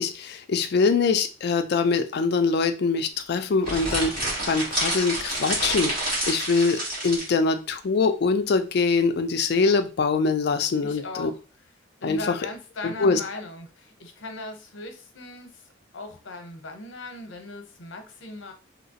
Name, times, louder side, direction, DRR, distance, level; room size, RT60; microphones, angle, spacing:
voice 1, 0.0-4.1 4.5-5.9 6.3-11.3 12.0-12.3 12.8-13.2, left 4 dB, 55° left, 8 dB, 0.4 m, -23 dB
sound 1, 3.6-7.3, right 1 dB, 50° right, 1.6 m, -28 dB
voice 2, 10.8-11.7 12.0-18.5, left 2 dB, 70° left, 5 dB, 0.8 m, -38 dB
3.1 x 2.9 x 2.8 m, 0.34 s
head